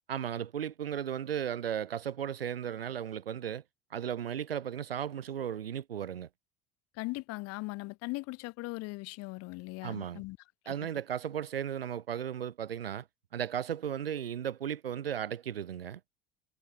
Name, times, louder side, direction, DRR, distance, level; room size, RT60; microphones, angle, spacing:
voice 1, 0.1-3.6 3.9-6.3 9.8-10.2 10.6-13.1 13.3-16.0, right 9 dB, 85° right, 1.7 m, -35 dB
voice 2, 7.0-10.4 10.6-10.7, left 24 dB, 60° left, 3.3 m, -39 dB
hypercardioid pair, 70°, 29 cm